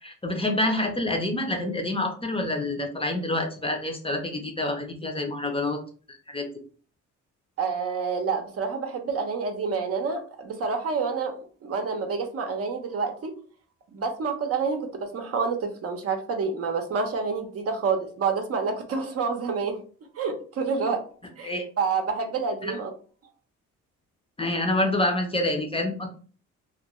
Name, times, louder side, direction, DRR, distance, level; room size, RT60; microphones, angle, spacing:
voice 1, 0.0-5.8 6.3-6.5 21.4-21.6 22.6-22.8 24.4-26.1, left 1 dB, 20° left, 3 dB, 0.5 m, -27 dB
voice 2, 7.6-11.3 11.6-13.3 13.9-19.8 20.2-21.0 21.4-21.5 21.8-22.9, right 5 dB, 50° right, 5 dB, 0.6 m, -28 dB
2.5 x 2.2 x 3.0 m, 0.41 s
cardioid pair, 90°, 30 cm